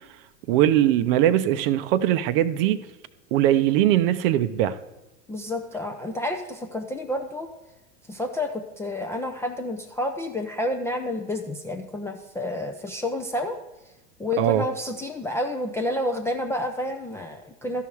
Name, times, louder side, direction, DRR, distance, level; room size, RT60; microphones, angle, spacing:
voice 1, 0.5-2.8 3.3-4.7 14.4-14.6, right 12 dB, 45° right, 14 dB, 0.6 m, -20 dB
voice 2, 5.3-7.5 8.1-13.6 14.2-17.8, left 1 dB, 5° left, 3 dB, 0.3 m, -29 dB
12.5 x 5.6 x 4.6 m, 1.1 s
figure-of-eight pair, 90°, 40 cm